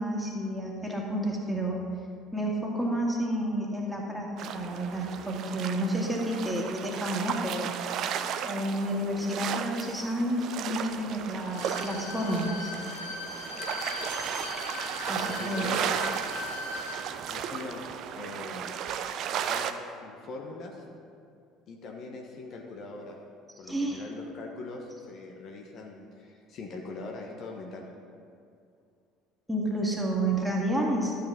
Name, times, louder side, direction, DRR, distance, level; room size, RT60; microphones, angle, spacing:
voice 1, 0.0-1.8 2.3-7.7 8.4-12.7 15.1-15.7 23.6-24.0 29.5-31.2, right 1 dB, 5° right, -2 dB, 2.1 m, -30 dB
sound 1, 4.4-19.7, right 8 dB, 50° right, 0.5 m, -35 dB
Bowed string instrument, 11.4-17.0 17.4-17.5, left 3 dB, 80° left, 1.3 m, -39 dB
voice 2, 15.1-16.0 17.3-17.8 18.2-18.7 19.3-20.8 21.7-23.2 23.6-27.9, left 3 dB, 50° left, 1 dB, 1.1 m, -41 dB
12.0 x 8.5 x 3.7 m, 2.4 s
figure-of-eight pair, 60°, 0 cm